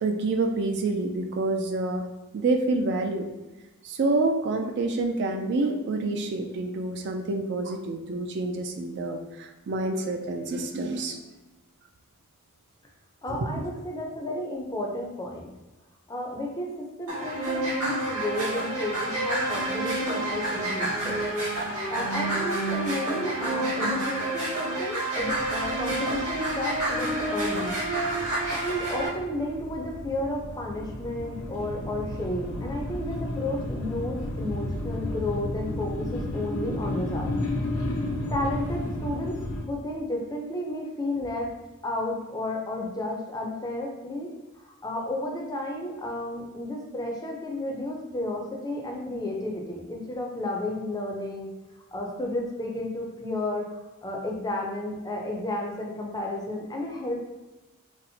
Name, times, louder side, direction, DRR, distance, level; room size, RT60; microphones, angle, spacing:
voice 1, 0.0-2.1 2.3-3.3 3.8-11.2 13.3-13.4, right 2 dB, 50° right, 5 dB, 0.3 m, -27 dB
voice 2, 13.2-15.5 16.1-21.3 21.9-27.8 28.5-37.3 38.3-39.4 39.7-41.5 41.8-44.3 44.6-51.5 51.9-53.7 54.0-57.2, left 1 dB, 15° left, 0 dB, 0.4 m, -32 dB
sound 1, 17.1-29.1, right 2 dB, 80° right, 1.4 m, -29 dB
sound 2, 25.2-39.6, left 1 dB, 75° left, 0.6 m, -33 dB
4.2 x 2.0 x 2.7 m, 1.1 s
head